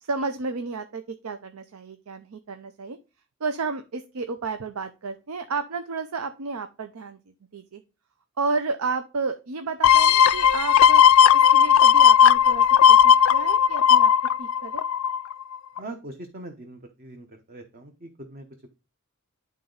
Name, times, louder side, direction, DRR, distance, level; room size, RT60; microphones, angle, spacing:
voice 1, 0.0-3.0 3.4-7.2 7.5-7.8 8.4-11.0 11.3-14.1 14.4-14.8, right 4 dB, 85° right, 8 dB, 0.6 m, -32 dB
sound 1, 9.8-15.3 15.8-15.9, left 8 dB, 70° left, 0.4 m, -16 dB
voice 2, 15.8-18.7, right 2 dB, 40° right, 5 dB, 0.9 m, -41 dB
11.0 x 3.9 x 3.9 m, 0.30 s
head